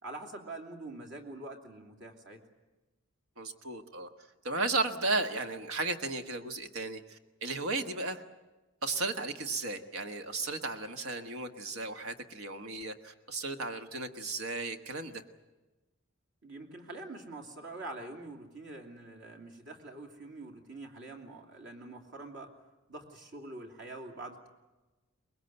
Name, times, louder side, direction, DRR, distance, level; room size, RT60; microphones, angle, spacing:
voice 1, 0.0-2.4 16.4-22.5 22.9-24.5, right 2 dB, 60° right, 3 dB, 2.9 m, -45 dB
voice 2, 3.4-4.1 4.4-8.2 8.8-15.2, right 3 dB, 85° right, 6 dB, 1.6 m, -35 dB
23.5 x 21.0 x 8.0 m, 1.1 s
head